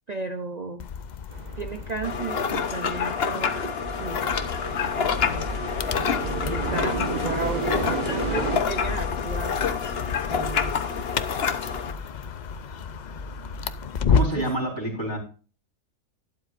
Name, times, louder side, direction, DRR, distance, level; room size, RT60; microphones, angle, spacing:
voice 1, 0.1-0.9 1.6-4.4 4.8-5.5 6.4-9.6 10.3-10.7 14.1-14.5, right 3 dB, 55° right, 8 dB, 0.4 m, -34 dB
sound 1, 0.8-14.5, left 6 dB, 70° left, 0.4 m, -32 dB
sound 2, 1.3-8.6, right 3 dB, 30° right, 1.4 m, -33 dB
sound 3, 2.0-11.9, left 6 dB, 50° left, 1.0 m, -28 dB
voice 2, 14.1-15.2, right 1 dB, 15° left, -3 dB, 4.3 m, -28 dB
12.0 x 11.5 x 2.5 m, 0.36 s
omnidirectional pair, 1.5 m